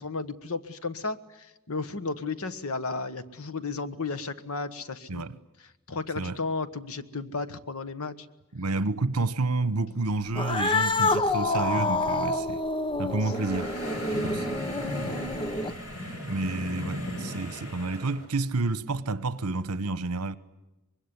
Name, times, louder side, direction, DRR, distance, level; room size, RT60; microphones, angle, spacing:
voice 1, 0.0-5.2 5.9-8.3 14.1-14.3, left 3 dB, 65° left, 1.3 m, -33 dB
voice 2, 8.5-12.6 13.0-13.7 14.2-14.4 16.3-20.4, right 3 dB, 80° right, 1.1 m, -29 dB
Cat, 10.3-15.9, left 2 dB, 25° left, 1.1 m, -28 dB
sound 1, 13.2-18.3, left 1 dB, 85° left, 7.5 m, -37 dB
25.0 x 21.5 x 9.8 m
head